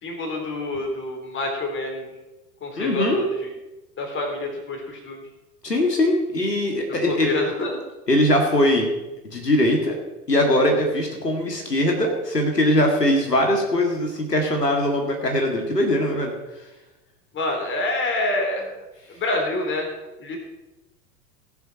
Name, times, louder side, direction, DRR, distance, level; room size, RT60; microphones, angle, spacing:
voice 1, 0.0-2.1 2.6-3.5 4.0-5.2 7.0-7.8 17.3-18.7 19.1-19.9 20.2-20.4, left 2 dB, 25° left, 2 dB, 3.5 m, -27 dB
voice 2, 2.8-3.2 5.6-7.3 8.1-8.9 9.3-10.0 10.3-16.3, left 1 dB, 85° left, 2 dB, 2.1 m, -21 dB
17.5 x 7.0 x 5.9 m, 1.0 s
figure-of-eight pair, 85°, 47 cm